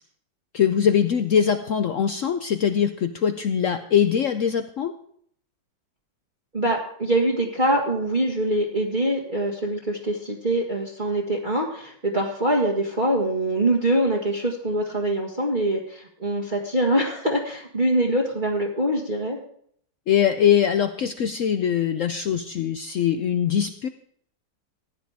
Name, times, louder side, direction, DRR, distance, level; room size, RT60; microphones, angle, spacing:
voice 1, 0.5-4.9 20.1-23.9, left 8 dB, 70° left, 9 dB, 0.7 m, -22 dB
voice 2, 6.5-19.4, right 1 dB, 25° right, -2 dB, 1.6 m, -24 dB
15.5 x 10.5 x 3.5 m, 0.62 s
omnidirectional pair, 2.0 m